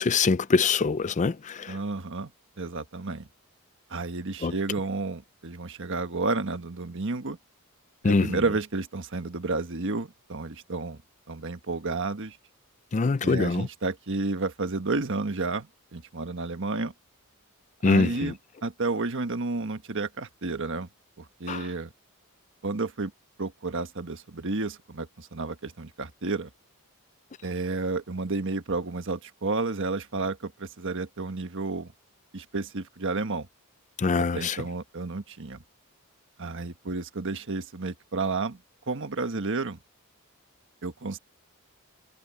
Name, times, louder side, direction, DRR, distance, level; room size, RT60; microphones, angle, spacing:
voice 1, 0.0-1.8 4.4-4.5 8.0-8.4 12.9-13.7 17.8-18.3 21.5-21.7 34.0-34.6, left 4 dB, 35° left, 0.4 m, -24 dB
voice 2, 1.7-2.3 2.6-3.3 3.9-7.4 8.0-11.0 11.3-12.4 13.2-16.9 17.8-20.9 21.2-21.9 22.6-23.1 23.4-26.5 27.4-31.9 32.3-33.5 34.3-35.6 36.4-38.6 38.9-39.8 40.8-41.2, right 3 dB, 55° right, 1.3 m, -31 dB
head